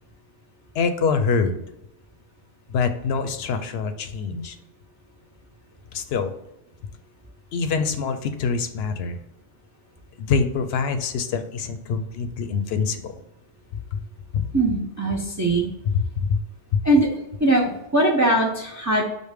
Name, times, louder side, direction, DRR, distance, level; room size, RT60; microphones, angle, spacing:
voice 1, 0.7-1.6 2.7-4.6 5.9-6.3 7.5-9.2 10.2-13.1 13.9-14.0 14.3-14.5 15.9-16.4 16.7-16.8, left 5 dB, 80° left, 8 dB, 0.8 m, -25 dB
voice 2, 14.5-15.7 16.8-17.1 17.4-19.1, right 1 dB, 25° right, -1 dB, 0.4 m, -21 dB
5.2 x 2.1 x 4.7 m, 0.83 s
omnidirectional pair, 1.0 m